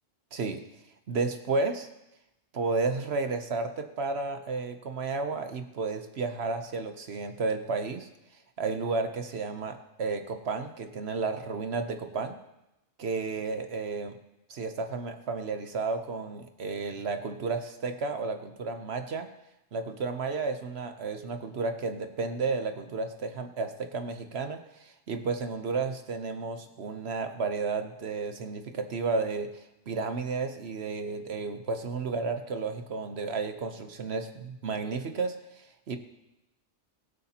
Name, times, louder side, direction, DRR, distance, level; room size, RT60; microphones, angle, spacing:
voice 1, 0.3-0.6 1.1-1.9 2.5-8.1 8.6-12.4 13.0-14.2 14.5-19.3 19.7-29.5 29.9-36.0, right 4 dB, 60° right, 7 dB, 1.1 m, -32 dB
23.0 x 8.0 x 2.9 m, 0.90 s
omnidirectional pair, 1.2 m